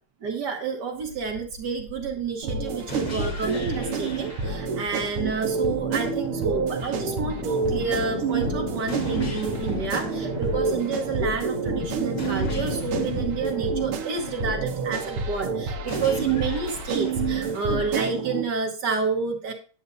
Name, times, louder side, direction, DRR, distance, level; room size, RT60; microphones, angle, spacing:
voice 1, 0.2-19.5, right 5 dB, 55° right, 3 dB, 1.6 m, -29 dB
sound 1, 1.0-18.0, left 9 dB, 75° left, 0.9 m, -39 dB
sound 2, 2.4-18.4, right 5 dB, 85° right, 1.7 m, -28 dB
sound 3, 2.9-4.9 8.9-10.9 12.2-14.2 15.9-17.9, left 2 dB, 45° left, 2.0 m, -39 dB
9.3 x 7.8 x 2.6 m, 0.40 s
omnidirectional pair, 2.3 m